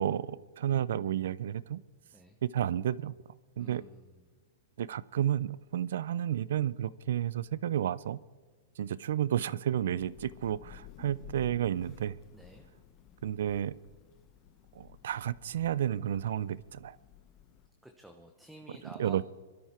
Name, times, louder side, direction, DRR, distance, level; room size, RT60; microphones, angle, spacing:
voice 1, 0.0-1.8 2.4-3.1 3.6-3.8 4.8-8.2 8.8-12.2 13.2-13.7 14.7-17.0 19.0-19.2, right 10 dB, 70° right, 20 dB, 0.5 m, -31 dB
voice 2, 3.6-4.3 12.3-12.7 17.8-19.2, right 1 dB, ahead, 3 dB, 0.9 m, -51 dB
Thunder / Rain, 10.0-17.7, left 11 dB, 30° left, 0.9 m, -54 dB
23.5 x 12.5 x 4.4 m, 1.4 s
hypercardioid pair, 155°, 0 cm